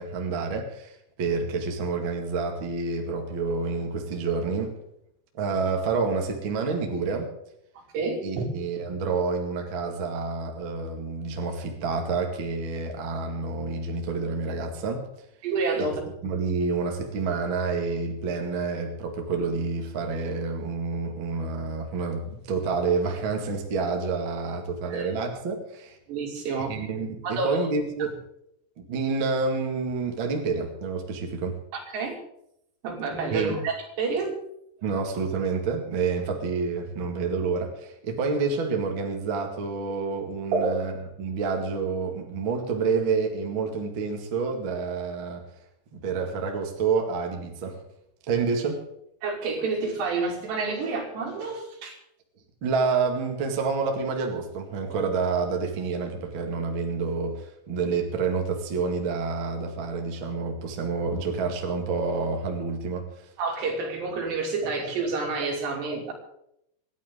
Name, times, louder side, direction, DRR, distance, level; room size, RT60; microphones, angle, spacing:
voice 1, 0.0-4.8 5.4-7.3 8.2-15.1 15.8-26.0 26.6-28.2 28.8-31.6 33.3-33.6 34.8-45.5 45.9-47.8 48.3-48.8 52.6-63.3, right 4 dB, 40° right, 2 dB, 1.8 m, -28 dB
voice 2, 7.9-8.5 15.4-16.0 24.9-25.1 26.1-26.7 27.2-27.6 31.7-32.2 32.8-34.3 40.5-40.7 49.2-52.0 63.4-66.1, right 4 dB, 70° right, 1 dB, 4.9 m, -29 dB
27.0 x 11.0 x 3.8 m, 0.76 s
omnidirectional pair, 5.2 m